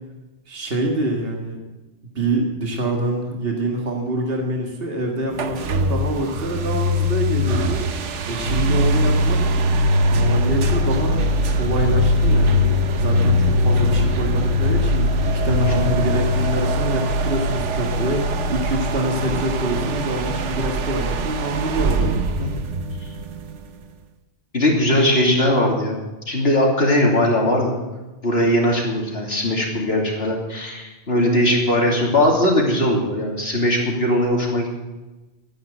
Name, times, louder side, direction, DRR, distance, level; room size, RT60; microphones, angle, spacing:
voice 1, 0.5-1.6 2.2-7.8 8.3-9.5 10.1-11.2 11.5-12.7 13.0-22.2, right 1 dB, 55° right, 1 dB, 2.1 m, -26 dB
sound 1, 5.3-23.8, equal, 90° right, 1.3 m, -21 dB
voice 2, 15.5-15.8 22.4-22.5 24.5-26.0 26.3-27.7 28.2-34.8, left 1 dB, 60° left, 0 dB, 3.2 m, -19 dB
12.5 x 11.0 x 7.8 m, 1.1 s
omnidirectional pair, 1.2 m